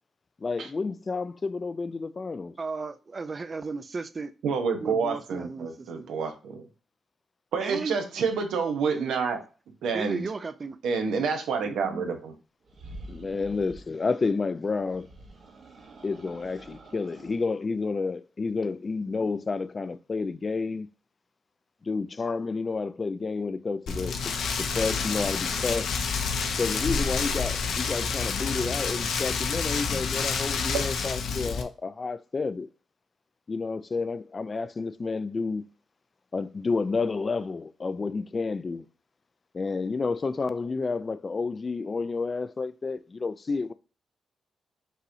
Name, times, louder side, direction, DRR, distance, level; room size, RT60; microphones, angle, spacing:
voice 1, 0.4-2.5 13.1-15.1 16.0-20.9 21.8-24.3 24.6-25.9 26.6-32.7 33.5-35.7 36.3-38.8 39.5-43.7, left 4 dB, 40° left, 0.3 m, -30 dB
voice 2, 2.6-4.3 4.8-6.1 7.6-8.2 8.9-9.1 9.9-10.8 11.6-12.1, right 4 dB, 40° right, 0.4 m, -35 dB
voice 3, 4.4-6.6 7.5-9.4 9.8-10.2 10.8-12.3 30.7-30.8, right 5 dB, 90° right, 0.8 m, -28 dB
sound 1, 12.6-13.9 14.8-17.4, right 2 dB, 60° right, 1.0 m, -47 dB
Rain, 23.9-31.6, left 5 dB, 80° left, 0.6 m, -29 dB
5.4 x 3.0 x 2.6 m
cardioid pair, 80°, 0 cm